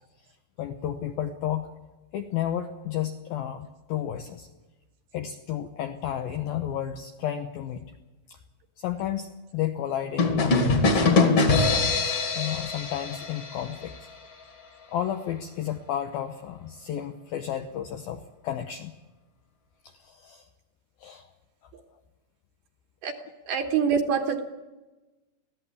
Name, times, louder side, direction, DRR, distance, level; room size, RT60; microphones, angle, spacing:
voice 1, 0.6-1.7 2.1-4.5 5.1-7.9 8.3-8.4 8.8-12.1 12.4-13.9 14.9-18.9 19.8-20.5 21.0-21.3, left 10 dB, 80° left, 6 dB, 2.1 m, -32 dB
sound 1, 10.2-13.9, left 3 dB, 40° left, 2.6 m, -23 dB
voice 2, 23.5-24.4, right 6 dB, 70° right, 4 dB, 2.8 m, -25 dB
22.5 x 15.5 x 8.4 m, 1.1 s
omnidirectional pair, 5.4 m